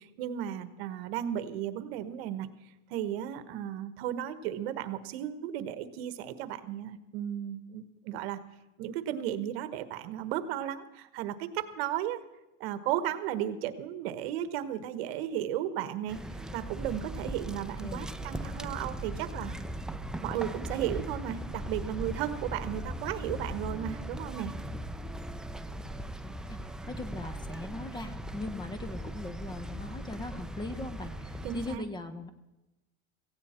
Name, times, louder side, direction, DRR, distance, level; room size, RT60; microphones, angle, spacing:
voice 1, 0.0-2.5 2.9-8.4 8.8-12.2 12.6-16.2 16.5-19.5 20.2-24.5 31.4-31.8, right 11 dB, 75° right, 13 dB, 1.2 m, -34 dB
sound 1, 16.1-31.8, right 1 dB, ahead, 0.4 m, -39 dB
voice 2, 26.2-32.3, left 2 dB, 15° left, 10 dB, 0.9 m, -40 dB
17.5 x 16.0 x 4.3 m, 0.99 s
supercardioid pair, 150°, 30 cm